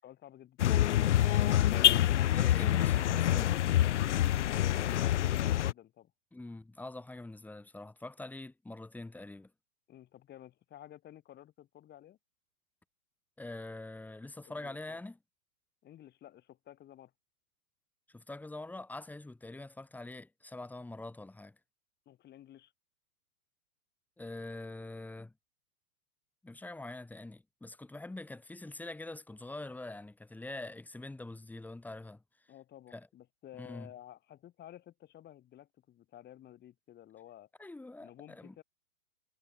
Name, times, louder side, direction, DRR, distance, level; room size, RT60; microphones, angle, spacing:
voice 1, 0.0-1.1 4.7-5.0 5.3-6.1 9.9-12.2 14.4-15.0 15.8-17.1 22.0-22.7 32.5-37.5 38.0-38.6, left 12 dB, 20° left, 6.6 m, -53 dB
sound 1, 0.6-5.7, left 12 dB, 50° left, 0.8 m, -26 dB
voice 2, 2.3-3.6 6.3-9.5 13.4-15.2 18.1-21.6 24.2-25.3 26.4-32.2 32.9-33.1 33.6-33.9 37.6-38.5, left 2 dB, 5° left, 2.6 m, -44 dB
figure-of-eight pair, 110°, 45 cm